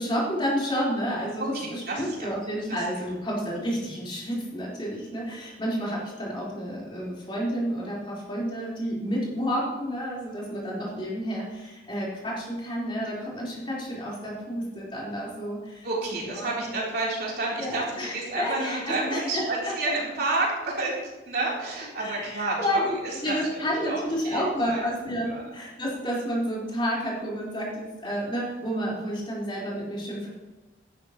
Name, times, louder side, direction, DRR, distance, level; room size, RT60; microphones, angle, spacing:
voice 1, 0.0-15.9 16.3-16.5 17.6-19.7 22.0-30.3, equal, 25° left, -6 dB, 4.6 m, -30 dB
voice 2, 1.4-2.4 2.7-2.8 15.8-24.9 25.3-25.5, right 2 dB, 55° right, -4 dB, 3.8 m, -30 dB
14.0 x 12.0 x 3.2 m, 1.1 s
head